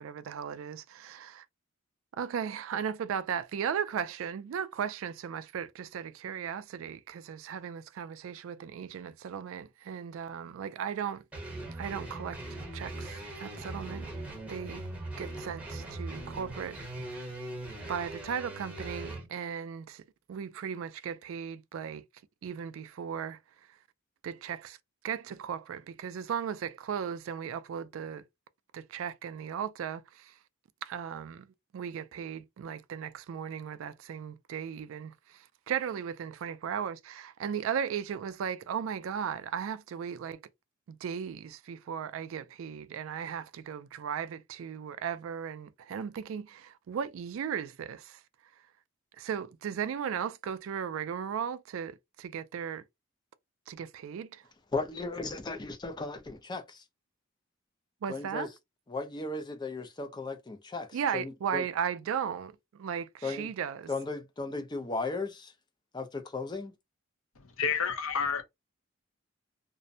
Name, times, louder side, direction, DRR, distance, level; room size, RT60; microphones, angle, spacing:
voice 1, 0.0-1.4 2.2-11.2 11.7-12.4 12.7-14.9 15.2-16.8 17.1-17.2 17.9-20.0 20.3-22.0 22.4-23.4 24.2-24.8 25.0-28.2 28.7-30.3 30.8-31.5 31.7-40.4 40.9-48.2 49.2-52.8 53.7-54.4 58.0-58.5 60.9-63.9, right 8 dB, 70° right, 0.3 m, -36 dB
sound 1, 11.3-19.3, right 1 dB, 5° right, 0.9 m, -40 dB
voice 2, 54.7-56.8 58.1-58.5 58.9-61.6 63.2-63.5 63.9-65.5 65.9-66.7, left 3 dB, 20° left, 0.4 m, -36 dB
voice 3, 67.4-68.4, left 6 dB, 70° left, 0.6 m, -30 dB
2.5 x 2.1 x 2.6 m
head